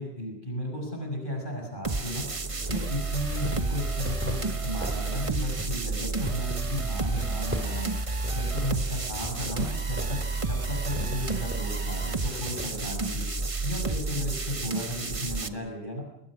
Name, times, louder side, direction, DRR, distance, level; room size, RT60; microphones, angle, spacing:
voice 1, 0.0-2.3 2.7-7.9 8.3-10.2 10.5-16.0, equal, 55° left, 1 dB, 6.0 m, -34 dB
sound 1, 1.8-15.5, right 3 dB, 35° right, 1.2 m, -31 dB
sound 2, 2.0-5.1 5.3-13.5, equal, 10° right, 2.4 m, -40 dB
28.0 x 21.0 x 6.2 m, 0.88 s
omnidirectional pair, 1.1 m